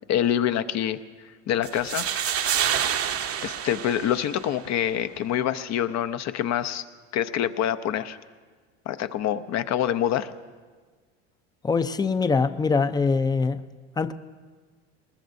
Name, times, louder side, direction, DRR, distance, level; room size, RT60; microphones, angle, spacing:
voice 1, 0.1-1.0 1.5-2.0 3.4-6.8 7.1-8.2 8.9-10.3, left 10 dB, 50° left, 11 dB, 0.7 m, -26 dB
sound 1, 1.6-4.7, right 9 dB, 40° right, 0.8 m, -28 dB
voice 2, 11.6-13.6 14.0-14.1, left 4 dB, 10° left, 12 dB, 0.5 m, -23 dB
21.5 x 20.5 x 2.7 m, 1.5 s
supercardioid pair, 100°, 35 cm